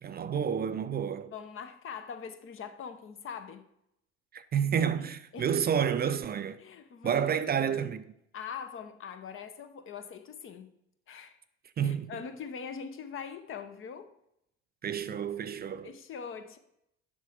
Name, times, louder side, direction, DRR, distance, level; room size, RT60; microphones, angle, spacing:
voice 1, 0.0-1.3 4.3-6.6 7.0-8.0 11.8-12.1 14.8-15.9, right 8 dB, 30° right, 0.5 m, -30 dB
voice 2, 1.3-3.7 5.0-5.5 6.6-7.3 7.6-7.8 8.3-10.7 11.1-11.4 11.8-14.1 15.8-16.6, left 6 dB, 40° left, 1.0 m, -42 dB
7.3 x 6.0 x 4.9 m
hypercardioid pair, 65°, 32 cm